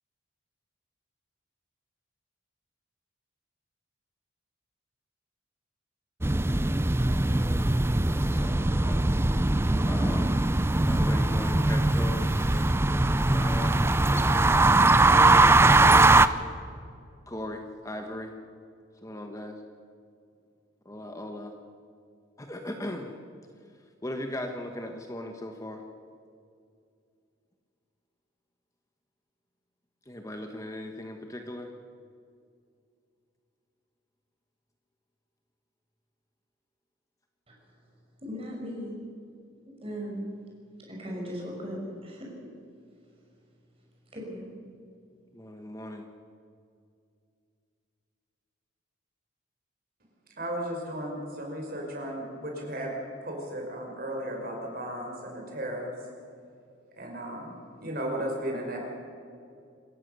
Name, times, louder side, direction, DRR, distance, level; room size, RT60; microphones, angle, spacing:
sound 1, 6.2-16.3, right 2 dB, 10° right, 0.5 m, -21 dB
voice 1, 8.0-9.0 9.8-10.4 10.9-12.7 13.3-14.6 15.1-15.5 15.8-16.4 17.3-18.3 19.0-19.5 20.8-21.5 22.4-23.2 24.0-25.8 30.1-31.7 45.3-46.1, left 1 dB, 15° left, 4 dB, 1.2 m, -38 dB
voice 2, 37.5-37.9 38.2-38.9 39.8-40.2 40.9-42.3 44.1-44.6, equal, 30° right, -2 dB, 6.1 m, -38 dB
voice 3, 50.4-52.9 53.2-55.9 57.0-57.5 57.8-58.8, right 1 dB, 45° right, 0 dB, 5.4 m, -35 dB
27.5 x 14.5 x 6.8 m, 2.4 s
head